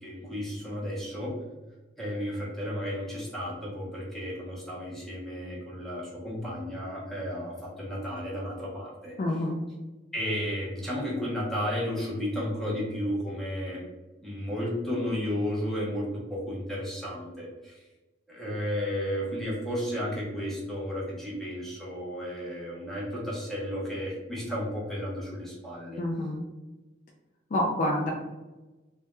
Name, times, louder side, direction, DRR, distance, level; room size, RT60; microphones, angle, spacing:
voice 1, 0.0-1.3 2.0-9.1 10.1-13.8 14.2-17.8 18.3-26.0, equal, ahead, -6 dB, 0.6 m, -33 dB
voice 2, 9.2-9.6 26.0-26.4 27.5-28.1, left 1 dB, 45° left, -1 dB, 0.3 m, -27 dB
2.2 x 2.1 x 2.9 m, 1.1 s
head